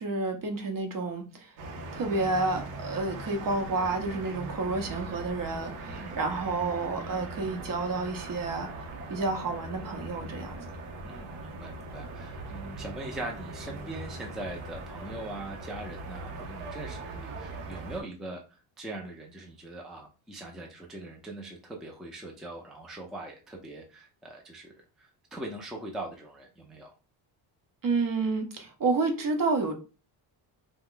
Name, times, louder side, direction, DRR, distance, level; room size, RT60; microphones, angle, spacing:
voice 1, 0.0-1.5 1.9-8.7 9.1-10.7 27.8-29.7, right 3 dB, 40° right, 4 dB, 0.8 m, -30 dB
sound 1, 1.6-18.0, right 2 dB, 85° right, 0.8 m, -40 dB
voice 2, 5.9-6.2 11.0-26.9, right 2 dB, ahead, 0 dB, 0.5 m, -41 dB
2.4 x 2.2 x 3.6 m, 0.33 s
cardioid pair, 85°, 49 cm